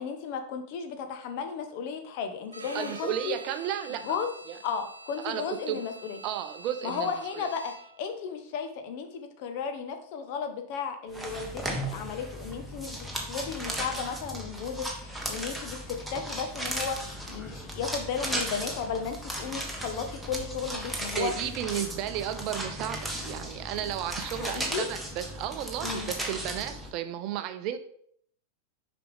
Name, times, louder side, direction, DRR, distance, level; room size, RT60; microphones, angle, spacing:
voice 1, 0.0-3.4 4.0-4.3 4.6-6.2 6.8-17.0 17.3-21.3 24.4-24.8 25.8-26.1, left 6 dB, 45° left, 6 dB, 0.9 m, -34 dB
Bowed string instrument, 2.5-8.1, right 2 dB, 80° right, 0.7 m, -46 dB
voice 2, 2.7-4.2 4.5-4.6 5.2-5.8 6.2-7.5 21.2-27.8, right 11 dB, 40° right, 9 dB, 0.6 m, -33 dB
sound 1, 11.1-26.9, right 1 dB, ahead, 1.2 m, -36 dB
6.7 x 5.1 x 3.5 m, 0.64 s
figure-of-eight pair, 90°, 0 cm